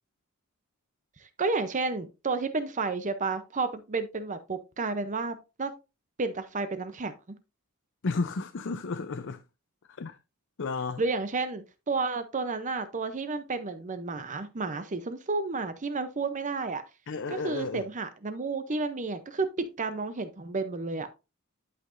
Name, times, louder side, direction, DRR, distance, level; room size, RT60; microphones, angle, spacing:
voice 1, 1.2-5.7 6.2-7.1 11.0-16.8 17.3-19.5 19.8-21.1, right 3 dB, 35° right, 0.6 m, -31 dB
voice 2, 8.0-9.4 9.9-10.2 10.6-11.0 17.1-17.8, left 4 dB, 60° left, 0.6 m, -32 dB
11.0 x 5.8 x 2.6 m
head